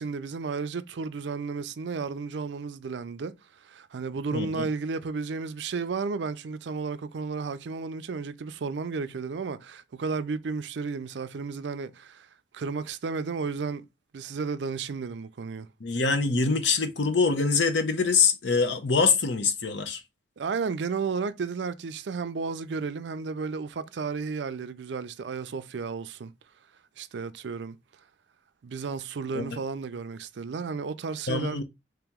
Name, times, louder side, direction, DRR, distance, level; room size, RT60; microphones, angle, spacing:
voice 1, 0.0-12.3 12.5-13.8 14.1-15.7 20.4-26.3 27.0-27.8 28.6-31.6, right 4 dB, 70° right, 0.4 m, -33 dB
voice 2, 4.3-4.7 15.8-20.0 29.3-29.6 31.3-31.6, left 4 dB, 75° left, 0.7 m, -24 dB
3.3 x 3.0 x 3.5 m
head